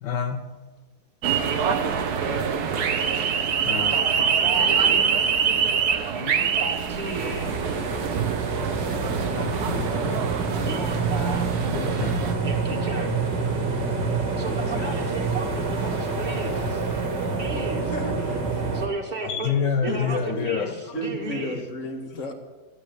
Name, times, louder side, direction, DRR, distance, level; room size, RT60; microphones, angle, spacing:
voice 1, 0.0-0.5 3.6-3.9 5.0-5.1 9.1-10.0 11.7-12.5 13.8-14.0 14.5-15.1 16.3-16.4 19.2-20.7 22.1-22.3, left 6 dB, 85° left, 1.8 m, -29 dB
sound 1, 1.2-12.3, right 7 dB, 65° right, 1.5 m, -25 dB
voice 2, 1.4-2.4 3.9-5.1 6.1-7.5 10.5-11.5 12.4-13.2 14.4-16.8 17.4-17.9 18.7-19.5 19.8-21.6, right 2 dB, 25° right, 2.4 m, -34 dB
sound 2, 6.9-18.9, right 4 dB, 90° right, 2.7 m, -27 dB
voice 3, 17.9-18.4 19.9-20.5 20.9-22.3, equal, 45° left, 2.0 m, -33 dB
14.5 x 9.7 x 8.2 m
omnidirectional pair, 1.9 m